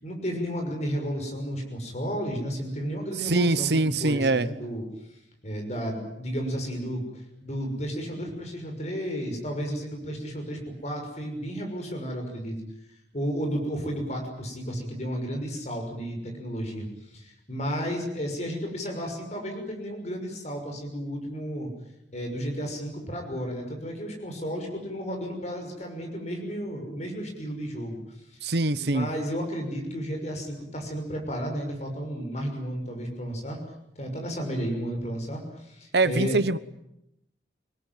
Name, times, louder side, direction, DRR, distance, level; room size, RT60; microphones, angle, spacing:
voice 1, 0.0-4.8 5.4-12.5 13.1-16.9 17.1-21.7 22.1-28.0 28.3-28.4 28.8-33.6 34.0-36.3, equal, 40° left, 3 dB, 6.2 m, -33 dB
voice 2, 3.2-4.5 28.4-29.1 35.9-36.6, right 2 dB, 60° right, 14 dB, 1.1 m, -23 dB
26.5 x 20.0 x 9.2 m, 0.83 s
head